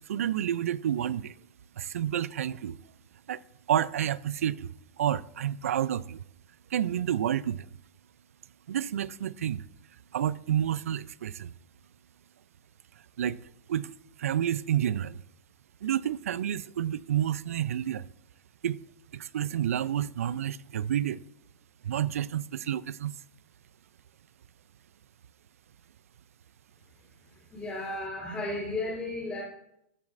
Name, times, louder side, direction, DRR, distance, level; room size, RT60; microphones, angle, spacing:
voice 1, 0.1-1.3 1.8-2.8 3.3-3.4 3.7-6.2 6.7-7.7 8.7-9.6 10.1-11.5 13.2-13.4 13.7-13.9 14.2-15.2 15.8-18.0 18.6-18.8 19.1-21.2 21.8-23.1, right 10 dB, 90° right, 0.4 m, -29 dB
voice 2, 27.3-29.4, left 2 dB, 15° left, 2.8 m, -34 dB
14.0 x 7.2 x 2.5 m
hypercardioid pair, 145°, 7 cm